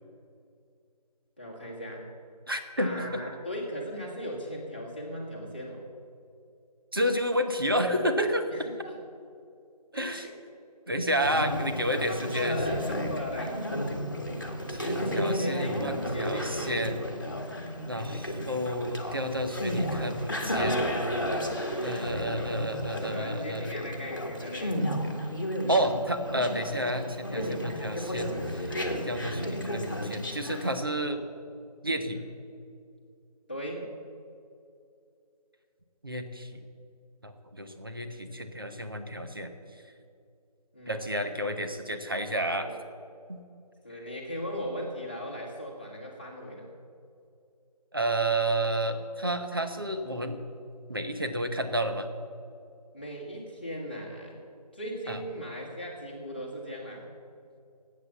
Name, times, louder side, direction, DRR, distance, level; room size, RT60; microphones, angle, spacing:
voice 1, 1.4-2.1 2.8-5.8 8.5-8.9 9.9-10.3 11.4-11.6 12.1-13.6 15.4-15.8 16.1-16.5 21.7-21.9 23.1-24.8 32.0-32.2 33.5-33.9 40.7-41.0 42.6-42.8 43.8-46.7 52.9-54.4 54.7-57.1, equal, 15° left, -4 dB, 1.5 m, -38 dB
voice 2, 2.5-3.2 6.9-8.7 9.9-10.3 10.9-12.6 14.7-17.0 17.8-20.7 21.8-23.8 25.7-28.8 29.0-31.2 31.8-32.2 36.0-36.6 37.2-39.5 40.9-42.7 43.3-43.4 47.9-50.4 50.9-52.1 55.1-55.2, right 1 dB, 35° right, 6 dB, 1.1 m, -30 dB
Conversation, 11.1-30.8, equal, 30° left, 1.5 m, -33 dB
18.5 x 8.5 x 7.0 m, 2.5 s
figure-of-eight pair, 180°, 21 cm